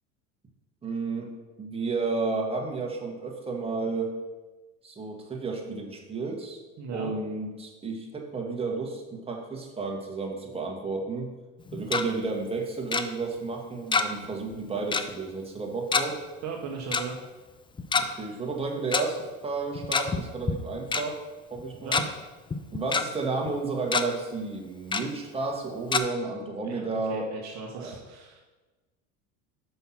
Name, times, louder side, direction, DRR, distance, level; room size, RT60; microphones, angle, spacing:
voice 1, 0.8-1.3 1.6-4.1 4.8-6.6 6.9-11.3 11.7-16.2 17.9-21.2 21.5-22.0 22.7-27.3 27.7-27.9, right 3 dB, 15° right, 0 dB, 1.5 m, -32 dB
voice 2, 6.8-7.1 16.4-17.2 21.8-22.1 26.6-28.4, right 5 dB, 45° right, 1 dB, 1.1 m, -37 dB
Tick-tock, 11.6-12.0 12.9-13.0 13.9-14.3 14.5-14.6 14.9-15.1 15.9-16.0 16.9-17.0 17.8-18.0 18.9-19.0 19.7-20.2 20.5-20.6 20.9-21.0 21.6-22.0 22.5-23.0 23.5-23.6 23.9-24.0 24.9-25.0 25.9-26.0, left 5 dB, 15° left, 0.4 m, -25 dB
5.6 x 5.6 x 5.9 m, 1.2 s
supercardioid pair, 95°, 38 cm